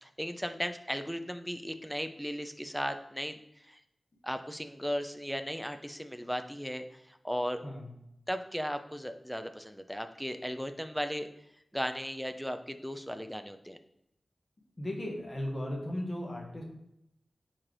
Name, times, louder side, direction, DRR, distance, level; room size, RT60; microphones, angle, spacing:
voice 1, 0.0-3.8 4.2-7.6 8.3-11.3 11.7-13.8, equal, ahead, 8 dB, 0.3 m, -36 dB
voice 2, 7.6-7.9 14.8-16.6, left 1 dB, 40° left, -1 dB, 1.2 m, -36 dB
4.4 x 3.8 x 3.1 m, 0.81 s
wide cardioid pair, 90°, 0 cm